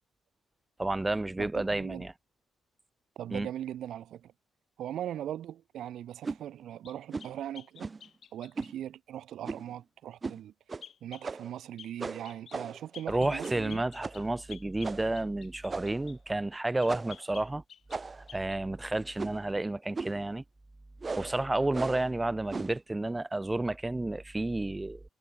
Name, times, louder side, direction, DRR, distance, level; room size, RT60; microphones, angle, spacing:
voice 1, 0.8-2.1 3.3-3.5 13.1-17.6 18.3-20.4 21.2-25.0, right 2 dB, 15° right, 0.8 m, -31 dB
voice 2, 1.4-2.1 3.2-4.3 4.8-7.9 8.3-10.5 11.0-13.8, right 11 dB, 75° right, 1.7 m, -40 dB
sound 1, 6.2-6.4 7.1-7.4 7.8-8.1 8.6-8.7 9.4-9.7 10.2-10.4 10.7-10.8 11.2-11.6 12.0-12.9 13.4-13.7 14.0-14.3 14.8-15.1 15.7-16.1 16.9-17.2 17.9-18.3 19.2-19.5 19.9-20.2 21.0-21.3 21.7-22.1 22.5-22.8, right 4 dB, 30° right, 0.4 m, -38 dB
sound 2, 6.8-8.8 10.8-11.3 11.8-12.0 12.2-12.6 12.9-16.2 16.8-18.0 18.3-18.6, left 8 dB, 60° left, 2.6 m, -51 dB
cardioid pair, 90°, 0 cm